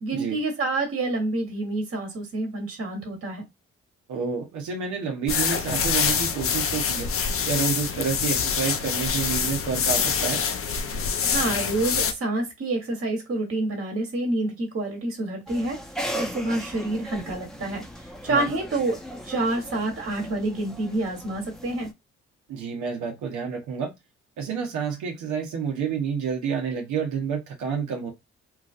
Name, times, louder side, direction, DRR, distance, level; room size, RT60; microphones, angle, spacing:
voice 1, 0.0-3.4 11.2-15.8 16.1-21.9, right 2 dB, 50° right, 1.3 m, -28 dB
voice 2, 4.1-7.1 7.4-10.4 18.3-18.5 22.5-23.9 24.4-28.1, right 6 dB, 80° right, 0.9 m, -29 dB
sound 1, 5.3-12.1, left 6 dB, 50° left, 0.6 m, -25 dB
sound 2, 15.5-21.9, equal, ahead, 0.8 m, -37 dB
3.1 x 2.4 x 2.4 m
supercardioid pair, 50°, 29 cm